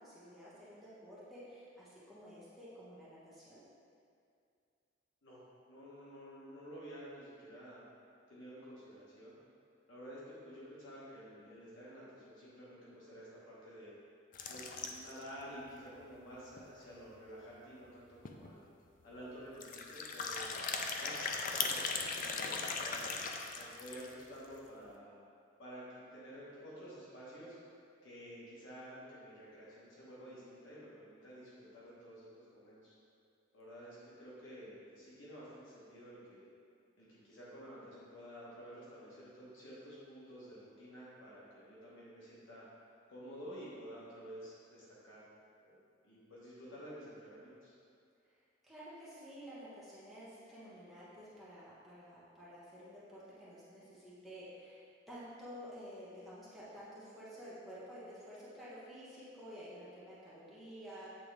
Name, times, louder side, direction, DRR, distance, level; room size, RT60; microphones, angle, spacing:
voice 1, 0.0-3.6 48.6-54.8 55.1-61.1, equal, ahead, -11 dB, 1.3 m, -51 dB
voice 2, 5.2-7.8 8.3-9.3 9.9-13.9 14.5-18.6 19.0-23.0 23.5-25.2 25.6-27.6 28.0-32.9 33.5-36.4 37.0-42.7 43.1-45.2 45.6-47.7, equal, 75° left, -8 dB, 1.3 m, -51 dB
sound 1, 14.3-15.3 15.7-15.8 16.0-16.1 16.6-16.7 17.9-18.0 18.2-18.5 19.5-24.2, left 4 dB, 45° left, 0.4 m, -38 dB
8.1 x 3.4 x 3.4 m, 2.4 s
head